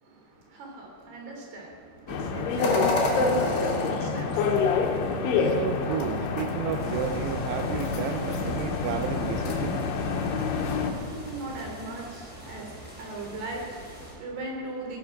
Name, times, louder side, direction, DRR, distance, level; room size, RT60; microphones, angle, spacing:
voice 1, 0.0-5.1 10.5-15.0, right 2 dB, 65° right, 0 dB, 5.3 m, -40 dB
sound 1, 2.1-10.9, left 4 dB, 90° left, 3.8 m, -27 dB
sound 2, 2.6-11.8, left 2 dB, 70° left, 4.5 m, -34 dB
voice 2, 5.4-9.8, right 9 dB, 80° right, 7 dB, 2.6 m, -32 dB
sound 3, 6.8-14.1, right 1 dB, ahead, 4.7 m, -44 dB
19.0 x 12.0 x 6.2 m, 2.1 s
omnidirectional pair, 5.1 m